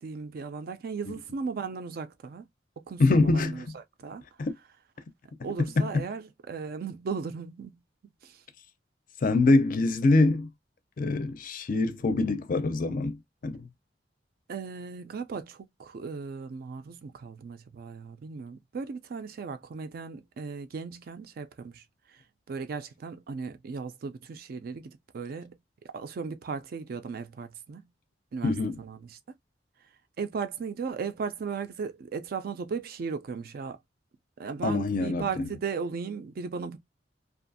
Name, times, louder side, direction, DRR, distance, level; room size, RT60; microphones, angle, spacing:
voice 1, 0.0-2.4 2.8-4.2 5.4-7.7 8.2-8.4 14.5-21.8 22.5-25.6 25.9-27.8 28.3-28.5 28.8-29.2 30.2-33.8 34.4-36.8, right 5 dB, 55° right, 0.4 m, -36 dB
voice 2, 3.0-3.8 4.4-4.6 5.6-5.9 9.2-10.5 11.0-13.7 28.4-28.8 34.6-35.5, left 2 dB, 45° left, 0.4 m, -24 dB
2.6 x 2.4 x 2.5 m
head